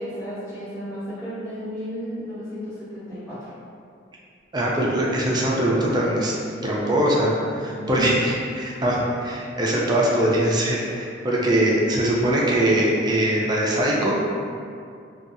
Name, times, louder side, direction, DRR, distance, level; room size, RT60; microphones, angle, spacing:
voice 1, 0.0-3.5 7.7-8.3, right 1 dB, 20° left, -18 dB, 1.0 m, -33 dB
voice 2, 4.5-6.4 6.6-14.2, right 1 dB, 25° right, -4 dB, 0.4 m, -22 dB
2.5 x 2.3 x 2.6 m, 2.4 s
head